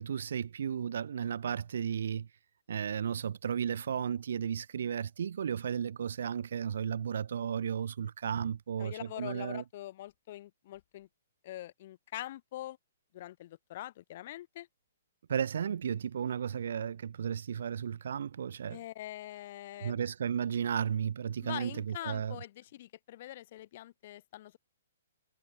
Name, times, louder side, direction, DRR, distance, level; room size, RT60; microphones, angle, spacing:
voice 1, 0.0-2.3 2.7-9.6 15.3-18.8 19.8-22.4, right 8 dB, 70° right, 3.4 m, -34 dB
voice 2, 8.8-11.1 11.4-12.8 13.1-14.7 18.7-20.0 21.4-24.6, left 14 dB, 50° left, 3.8 m, -44 dB
hypercardioid pair, 145°, 0 cm